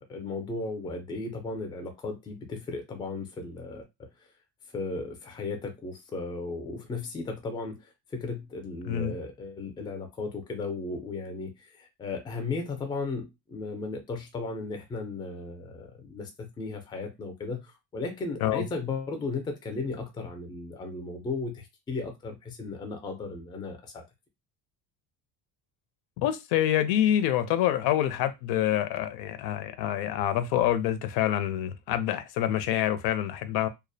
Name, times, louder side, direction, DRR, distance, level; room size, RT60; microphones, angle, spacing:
voice 1, 0.1-3.8 4.7-24.0, left 3 dB, 15° left, 0.3 m, -35 dB
voice 2, 26.2-33.7, left 11 dB, 85° left, 0.5 m, -26 dB
2.3 x 2.0 x 2.6 m
cardioid pair, 155°, 38 cm